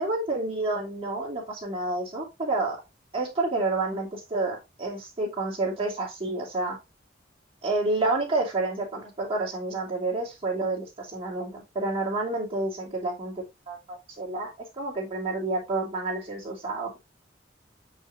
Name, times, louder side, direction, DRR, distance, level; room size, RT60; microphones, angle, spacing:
voice 1, 0.0-2.8 3.1-6.8 7.6-13.3 13.7-14.5 14.8-17.0, right 2 dB, 30° right, -4 dB, 2.8 m, -29 dB
6.8 x 6.1 x 2.6 m, 0.23 s
head